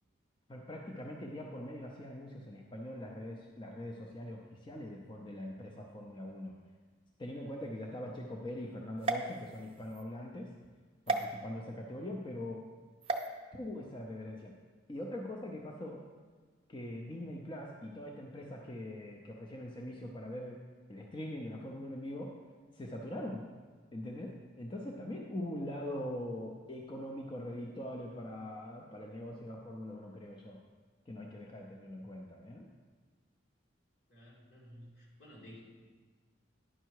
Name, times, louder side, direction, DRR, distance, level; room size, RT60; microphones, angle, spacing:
voice 1, 0.5-6.5 7.2-10.5 11.1-12.6 13.5-14.5 14.9-16.0 16.7-20.6 20.9-22.4 22.7-23.5 23.9-30.6 31.1-32.7, left 1 dB, 25° left, 0 dB, 0.6 m, -42 dB
sound 1, 9.0-10.0 11.1-11.2 13.0-13.3, right 3 dB, 30° right, 0.5 m, -34 dB
voice 2, 34.1-35.7, equal, 65° left, -4 dB, 2.4 m, -54 dB
10.0 x 5.6 x 4.6 m, 1.4 s
head